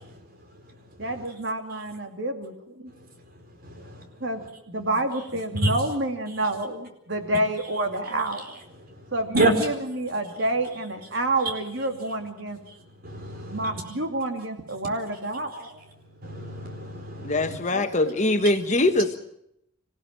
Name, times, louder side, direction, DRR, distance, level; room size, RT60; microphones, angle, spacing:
voice 1, 1.0-2.9 4.2-4.4 4.7-8.6 9.1-12.6 13.5-15.8 17.7-18.1, right 1 dB, 65° right, 6 dB, 2.7 m, -29 dB
voice 2, 13.0-13.7 16.2-17.6, right 2 dB, 50° right, 4 dB, 4.5 m, -26 dB
voice 3, 17.2-19.2, left 2 dB, 40° left, 8 dB, 1.4 m, -22 dB
26.5 x 16.5 x 7.6 m, 0.76 s
head